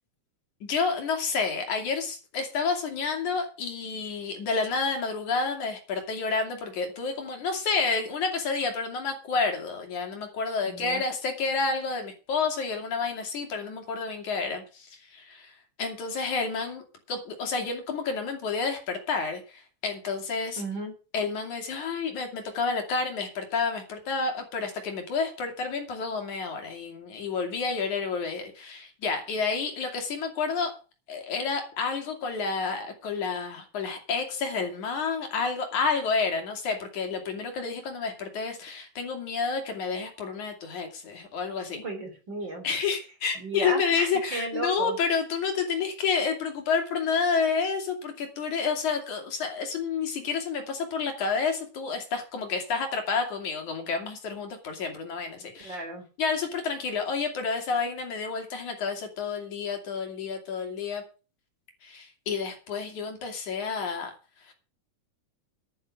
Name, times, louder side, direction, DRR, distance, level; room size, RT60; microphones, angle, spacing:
voice 1, 0.6-15.5 15.8-20.6 21.1-30.7 31.1-41.8 42.6-55.8 56.2-61.0 61.8-64.1 64.5-64.6, left 5 dB, 65° left, 4 dB, 4.0 m, -30 dB
voice 2, 10.6-11.0 20.6-20.9 41.7-42.6 43.4-45.0 55.6-56.0, right 2 dB, 35° right, 4 dB, 4.2 m, -34 dB
11.0 x 10.5 x 6.5 m, 0.35 s
omnidirectional pair, 3.7 m